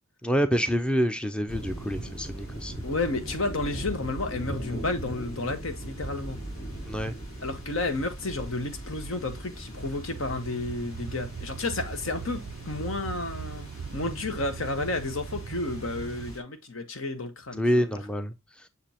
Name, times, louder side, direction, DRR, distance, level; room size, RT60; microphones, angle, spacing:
voice 1, 0.2-2.7 6.9-7.1 17.5-18.7, equal, 5° left, 0.5 m, -27 dB
sound 1, 1.5-16.4, right 1 dB, 85° left, 3.0 m, -40 dB
voice 2, 2.8-6.4 7.4-17.9, left 2 dB, 70° left, 1.2 m, -32 dB
sound 2, 10.1-16.3, right 7 dB, 70° right, 0.4 m, -40 dB
6.7 x 5.1 x 2.8 m
head